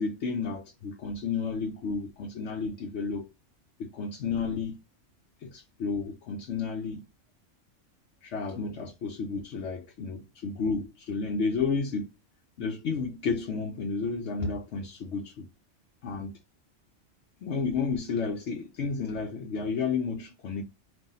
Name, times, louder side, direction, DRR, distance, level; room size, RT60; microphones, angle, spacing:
voice 1, 0.0-3.3 3.8-4.8 5.4-7.0 8.2-12.1 12.6-15.5 16.0-16.3 17.4-20.6, left 5 dB, 70° left, 0.9 m, -31 dB
3.8 x 2.6 x 4.1 m
omnidirectional pair, 1.2 m